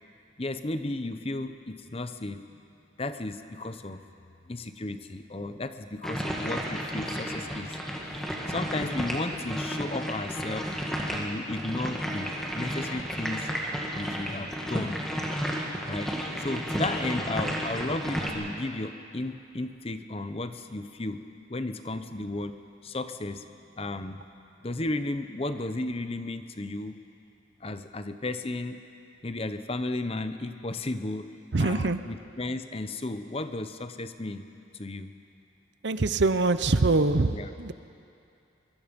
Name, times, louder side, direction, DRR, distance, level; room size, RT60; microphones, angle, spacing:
voice 1, 0.4-2.5 3.0-4.0 4.5-7.8 8.5-10.7 11.1-13.5 14.0-15.0 15.8-22.6 22.8-23.5 23.8-24.2 24.6-27.0 27.6-28.8 29.2-31.3 31.6-34.4 34.7-35.1 37.3-37.5, left 2 dB, 30° left, 10 dB, 0.7 m, -34 dB
sound 1, 6.0-18.3, equal, ahead, 2.1 m, -32 dB
voice 2, 31.5-32.0 35.8-37.7, right 3 dB, 60° right, 11 dB, 0.7 m, -24 dB
23.0 x 23.0 x 5.3 m, 2.6 s
head